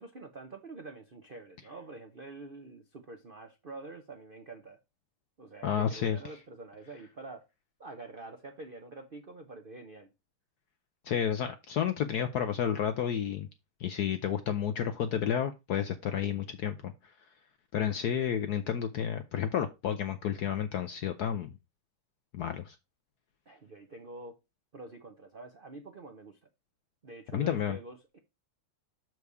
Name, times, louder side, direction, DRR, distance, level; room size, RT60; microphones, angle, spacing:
voice 1, 0.0-4.8 5.4-7.5 7.8-10.1 23.5-24.4 24.7-26.4 27.0-28.2, right 3 dB, 70° right, 0.5 m, -46 dB
voice 2, 5.6-6.2 11.1-13.5 13.8-16.9 17.7-21.5 22.3-22.8 27.3-27.8, left 9 dB, 70° left, 0.9 m, -31 dB
6.8 x 4.6 x 4.7 m
omnidirectional pair, 2.3 m